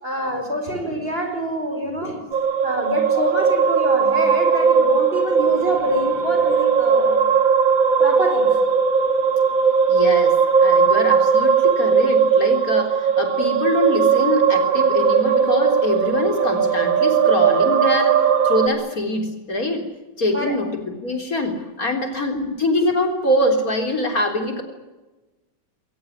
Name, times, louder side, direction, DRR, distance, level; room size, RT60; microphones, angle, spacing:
voice 1, 0.0-2.2 2.6-7.3 8.0-8.6 20.3-20.6 22.3-22.5, equal, 30° right, 5 dB, 5.2 m, -26 dB
sound 1, 2.3-18.7, right 6 dB, 85° right, 3.0 m, -18 dB
voice 2, 9.9-10.4 10.6-19.9 20.2-24.6, left 1 dB, 50° left, 4 dB, 4.2 m, -24 dB
22.0 x 19.0 x 9.8 m, 1.1 s
omnidirectional pair, 2.0 m